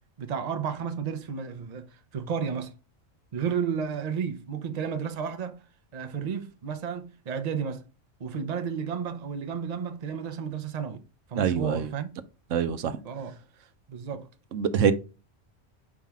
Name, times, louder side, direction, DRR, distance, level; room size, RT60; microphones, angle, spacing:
voice 1, 0.2-2.7 3.3-5.6 5.9-7.8 8.2-11.0 11.3-12.1 13.0-13.4 13.9-14.3, right 7 dB, 40° right, 0.7 m, -32 dB
voice 2, 11.4-11.9 12.5-13.0 14.5-14.9, right 7 dB, 85° right, 1.1 m, -24 dB
5.6 x 5.0 x 3.6 m
omnidirectional pair, 1.3 m